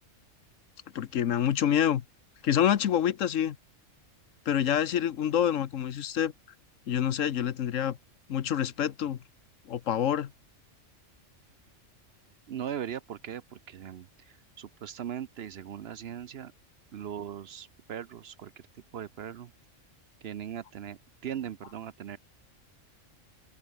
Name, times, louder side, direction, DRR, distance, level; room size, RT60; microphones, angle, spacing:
voice 1, 0.9-2.0 2.4-3.6 4.5-6.3 6.9-8.0 8.3-9.2 9.7-10.3, left 10 dB, 80° left, 1.3 m, -27 dB
voice 2, 12.5-16.5 16.9-18.5 18.9-19.5 20.2-22.2, right 9 dB, 60° right, 0.8 m, -39 dB
open air
omnidirectional pair, 1.3 m